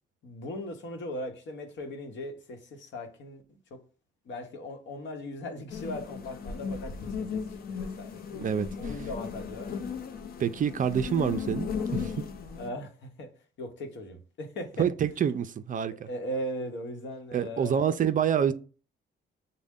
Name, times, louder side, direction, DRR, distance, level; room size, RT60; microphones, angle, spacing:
voice 1, 0.2-3.6 4.3-7.3 7.7-8.2 8.8-9.7 12.6-13.3 13.6-14.9 16.1-18.0, left 1 dB, 65° left, 1.0 m, -38 dB
sound 1, 5.7-12.7, left 6 dB, 50° left, 0.6 m, -36 dB
voice 2, 8.3-8.9 10.4-12.1 14.8-16.1 17.3-18.5, right 8 dB, 40° right, 0.4 m, -27 dB
6.3 x 2.1 x 3.5 m
cardioid pair, 90°, 20 cm